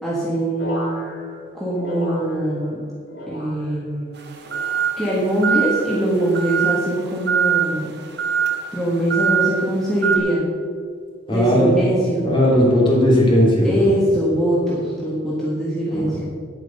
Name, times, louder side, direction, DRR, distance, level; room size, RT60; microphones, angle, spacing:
voice 1, 0.0-1.0 1.5-2.8 3.3-4.1 5.0-7.9 8.7-10.4 11.3-12.3 13.6-16.2, right 1 dB, ahead, -8 dB, 1.8 m, -22 dB
sound 1, 0.6-2.8 3.1-3.9 4.4-5.1 5.8-6.2 7.1-7.5 8.4-8.7, equal, 70° left, 2.5 m, -35 dB
sound 2, 4.2-10.2, right 8 dB, 60° right, 1.4 m, -23 dB
voice 2, 11.3-11.7 12.2-13.9 15.9-16.3, left 1 dB, 25° left, -4 dB, 3.0 m, -17 dB
9.5 x 9.0 x 5.6 m, 2.2 s
head